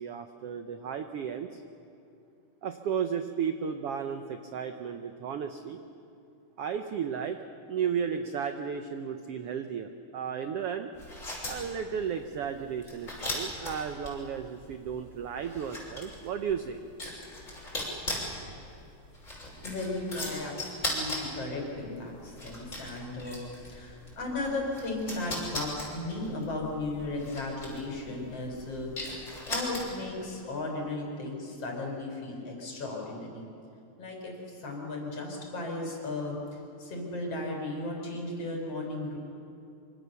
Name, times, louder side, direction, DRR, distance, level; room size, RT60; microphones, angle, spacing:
voice 1, 0.0-1.6 2.6-5.8 6.6-10.9 11.5-16.8, right 7 dB, 75° right, 7 dB, 1.4 m, -34 dB
sound 1, 10.9-30.2, left 1 dB, 20° left, 6.4 m, -39 dB
voice 2, 19.6-33.5 34.0-36.4 36.8-39.2, left 2 dB, 45° left, 0 dB, 5.4 m, -35 dB
25.5 x 25.5 x 6.9 m, 2.7 s
omnidirectional pair, 3.8 m